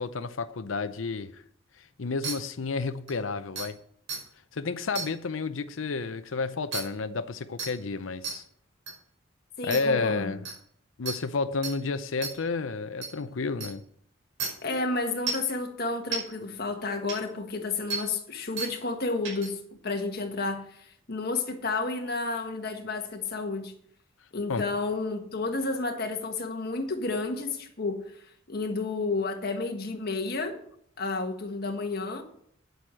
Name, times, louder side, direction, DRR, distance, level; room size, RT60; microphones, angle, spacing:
voice 1, 0.0-1.4 1.8-3.8 4.5-8.4 9.6-10.4 11.0-13.8 24.5-24.7, left 4 dB, 85° left, 0.6 m, -31 dB
sound 1, 2.2-2.3 3.1-3.2 3.6-3.7 4.1-4.2 4.9-5.1 6.7-6.8 7.6-7.7 8.2-8.3 8.9-9.0 9.7-9.8 10.4-10.5 11.1-11.2 11.6-11.7 12.2-12.3 13.0-13.1 13.6-13.7 14.4-14.5 15.3-15.5 16.1-16.2 17.1-17.2 17.9-18.0 18.6-18.7 19.2-19.5, right 4 dB, 85° right, 5.2 m, -32 dB
voice 2, 9.6-10.3 14.6-23.7 24.3-28.1 28.5-30.6 31.0-32.2, left 3 dB, 50° left, 1.6 m, -31 dB
9.3 x 8.1 x 6.3 m
head